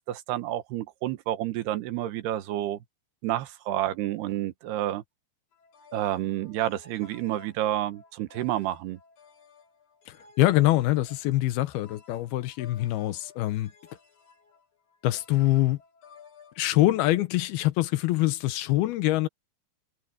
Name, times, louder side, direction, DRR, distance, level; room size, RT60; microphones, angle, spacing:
voice 1, 0.0-2.8 3.2-5.0 5.9-9.0, right 13 dB, 90° right, 3.3 m, -29 dB
sound 1, 5.5-16.6, left 5 dB, 50° left, 5.6 m, -54 dB
voice 2, 10.1-13.7 15.0-15.8 16.6-19.3, left 16 dB, 80° left, 2.8 m, -24 dB
omnidirectional pair, 4.5 m